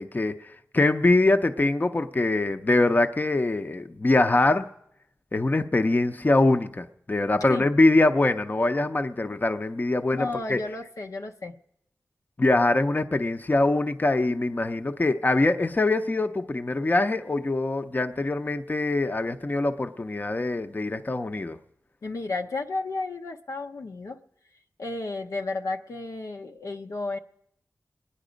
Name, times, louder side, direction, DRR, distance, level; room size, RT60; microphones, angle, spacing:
voice 1, 0.0-4.7 5.3-10.6 12.4-21.6, left 2 dB, 35° left, 8 dB, 0.7 m, -23 dB
voice 2, 10.0-11.6 22.0-24.2 24.8-27.2, left 3 dB, 80° left, 4 dB, 0.8 m, -32 dB
26.5 x 10.0 x 5.1 m, 0.76 s
wide cardioid pair, 60°, 6 cm